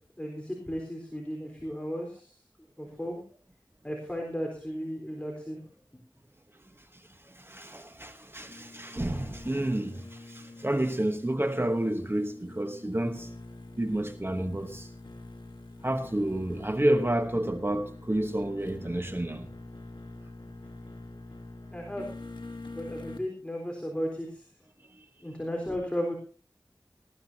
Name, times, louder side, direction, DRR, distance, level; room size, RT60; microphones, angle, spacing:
voice 1, 0.2-2.4 2.8-3.2 3.8-5.6 21.7-22.1 22.7-24.4 25.2-26.1, equal, 15° left, 3.8 m, -35 dB
voice 2, 7.3-13.3 13.8-14.9 15.8-19.5, right 1 dB, 30° right, 1.1 m, -30 dB
sound 1, 8.5-23.3, left 2 dB, 75° left, 1.4 m, -45 dB
19.0 x 14.0 x 2.8 m
wide cardioid pair, 55°, 8 cm